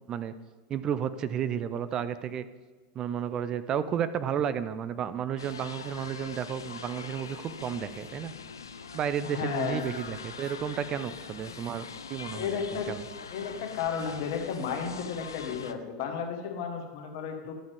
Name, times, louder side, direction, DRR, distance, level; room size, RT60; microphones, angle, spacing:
voice 1, 0.7-2.4 2.9-8.3 8.9-13.0, right 8 dB, 35° right, 13 dB, 0.4 m, -32 dB
sound 1, 5.4-15.7, left 6 dB, 75° left, 0.5 m, -43 dB
voice 2, 9.2-9.8 12.3-12.9 13.3-17.5, left 6 dB, 55° left, 4 dB, 1.4 m, -33 dB
11.5 x 7.0 x 3.5 m, 1.4 s
figure-of-eight pair, 85°, 2 cm